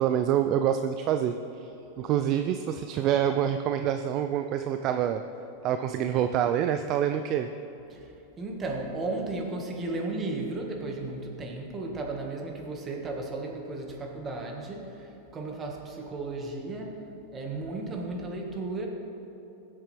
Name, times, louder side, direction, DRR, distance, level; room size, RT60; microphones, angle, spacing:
voice 1, 0.0-1.7 2.0-5.2 5.6-7.5, right 10 dB, 45° right, 8 dB, 0.4 m, -26 dB
voice 2, 8.4-17.1 17.3-18.9, right 2 dB, 25° right, 1 dB, 1.7 m, -34 dB
16.5 x 7.6 x 3.4 m, 3.0 s
hypercardioid pair, 125°, 0 cm